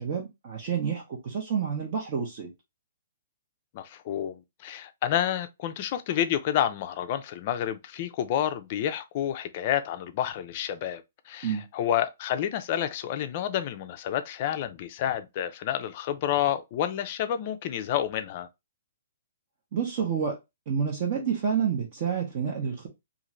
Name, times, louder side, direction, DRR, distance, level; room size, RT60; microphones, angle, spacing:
voice 1, 0.0-2.5 11.4-11.6 19.7-20.4 20.7-22.9, right 7 dB, 35° right, 0.6 m, -29 dB
voice 2, 3.7-18.5, left 11 dB, 35° left, 0.4 m, -29 dB
2.5 x 2.5 x 3.0 m
hypercardioid pair, 165°, 0 cm